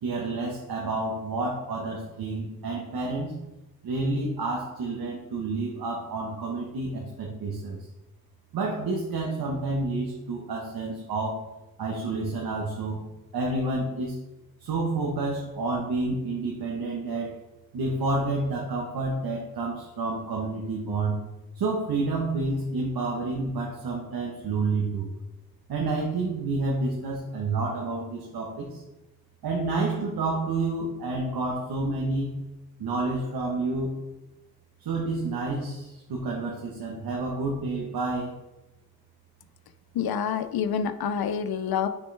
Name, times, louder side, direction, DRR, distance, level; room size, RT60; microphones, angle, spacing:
voice 1, 0.0-3.4 3.8-7.8 8.5-11.4 11.8-13.0 13.3-14.2 14.6-17.4 17.7-21.2 21.5-25.1 25.7-28.8 29.4-32.4 32.8-34.0 34.8-38.4, right 3 dB, 75° right, -2 dB, 1.2 m, -29 dB
voice 2, 39.9-41.9, left 7 dB, 75° left, 10 dB, 0.6 m, -27 dB
6.4 x 6.0 x 3.4 m, 1.0 s
wide cardioid pair, 135°, 37 cm